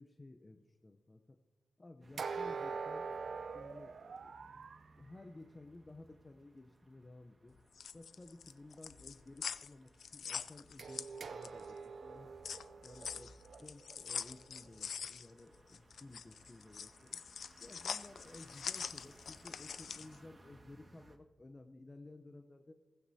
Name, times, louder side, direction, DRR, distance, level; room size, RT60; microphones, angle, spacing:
voice 1, 0.0-1.4 1.8-3.1 3.5-4.6 5.0-7.6 7.9-12.3 12.8-13.3 13.6-17.2 17.6-22.8, left 2 dB, 30° left, 6 dB, 0.7 m, -55 dB
sound 1, 2.0-21.2, right 2 dB, 35° right, 1.8 m, -64 dB
sound 2, 2.2-4.9 10.8-14.8, right 5 dB, 65° right, 0.6 m, -44 dB
sound 3, 7.6-11.7 12.1-20.2, left 7 dB, 75° left, 0.4 m, -44 dB
15.5 x 15.5 x 2.8 m, 1.3 s
cardioid pair, 55°, 0 cm